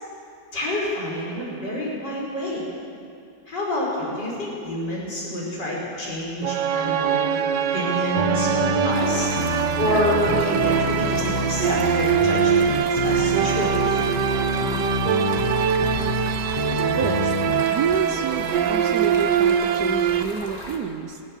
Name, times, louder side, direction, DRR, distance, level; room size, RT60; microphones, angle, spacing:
voice 1, 0.5-2.7 3.5-7.4 7.7-9.3 9.7-14.0, left 1 dB, 75° left, -5 dB, 6.2 m, -28 dB
sound 1, 6.4-20.2, right 9 dB, 85° right, 1.4 m, -23 dB
sound 2, 8.2-17.7, left 4 dB, 40° left, 0.7 m, -28 dB
Stream, 8.9-20.8, left 1 dB, 25° left, 1.9 m, -38 dB
voice 2, 17.0-17.3 17.7-21.2, right 6 dB, 65° right, 6 dB, 1.4 m, -29 dB
19.5 x 18.5 x 7.5 m, 2.5 s
omnidirectional pair, 1.9 m